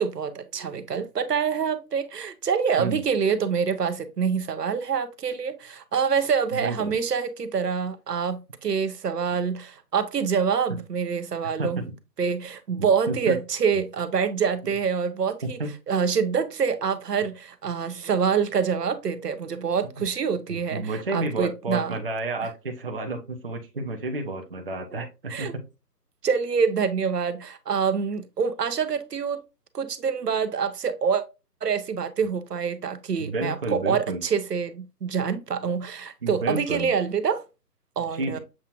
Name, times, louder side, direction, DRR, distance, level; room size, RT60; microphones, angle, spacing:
voice 1, 0.0-11.8 12.2-15.6 15.9-22.0 25.3-25.5 26.2-29.4 29.7-31.2 31.6-37.4 38.0-38.4, right 6 dB, 75° right, 0.8 m, -26 dB
voice 2, 6.5-6.9 11.4-11.7 12.8-13.3 15.6-15.7 20.5-25.5 33.2-34.2 36.2-36.9 38.1-38.4, right 2 dB, 35° right, 0.6 m, -31 dB
7.3 x 2.4 x 2.9 m
figure-of-eight pair, 150°, 49 cm